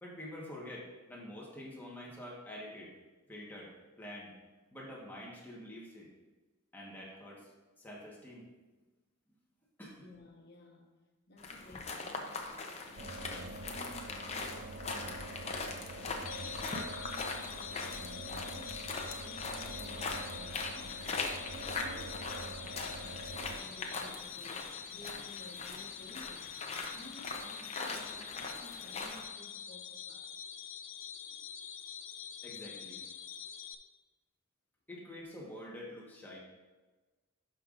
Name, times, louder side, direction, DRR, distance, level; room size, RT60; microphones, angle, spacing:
voice 1, 0.0-2.9 3.3-4.3 4.7-6.1 6.7-7.5 7.8-8.4 9.8-10.0 23.6-23.7 31.3-31.4 32.4-33.0 34.9-36.4, left 1 dB, 10° left, -4 dB, 1.4 m, -47 dB
voice 2, 10.0-10.9 11.3-26.6 26.9-30.3, left 2 dB, 60° left, 0 dB, 1.2 m, -55 dB
sound 1, 11.4-29.3, left 3 dB, 35° left, 0.7 m, -41 dB
sound 2, 13.0-23.6, right 2 dB, 45° right, 0.4 m, -46 dB
sound 3, 16.3-33.8, left 8 dB, 90° left, 0.5 m, -46 dB
11.0 x 5.5 x 2.6 m, 1.3 s
head